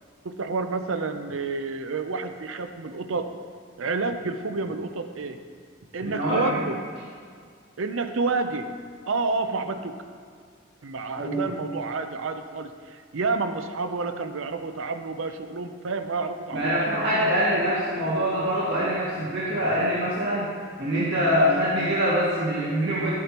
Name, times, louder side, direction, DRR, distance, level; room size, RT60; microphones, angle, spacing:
voice 1, 0.2-3.3 3.8-5.4 5.9-6.8 7.8-8.7 9.1-10.0 10.8-17.1 17.6-17.7, right 4 dB, 75° right, 8 dB, 0.6 m, -29 dB
voice 2, 6.0-6.5 11.2-11.5 16.5-20.5 20.8-23.1, equal, 50° right, -9 dB, 2.0 m, -24 dB
12.5 x 8.3 x 3.0 m, 2.1 s
head